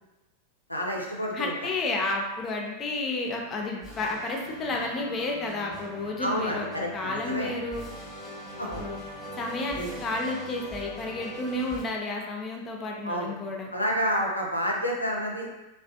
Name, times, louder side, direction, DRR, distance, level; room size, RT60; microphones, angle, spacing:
voice 1, 0.7-1.5 6.2-7.5 8.6-8.8 9.8-9.9 13.0-13.3 13.7-15.5, equal, 85° left, -1 dB, 0.4 m, -29 dB
voice 2, 1.3-7.9 8.8-9.0 9.4-13.7, left 2 dB, 25° left, 0 dB, 0.4 m, -31 dB
sound 1, 3.8-11.8, right 1 dB, ahead, 0.8 m, -42 dB
2.4 x 2.3 x 2.3 m, 1.0 s
figure-of-eight pair, 90°, 0 cm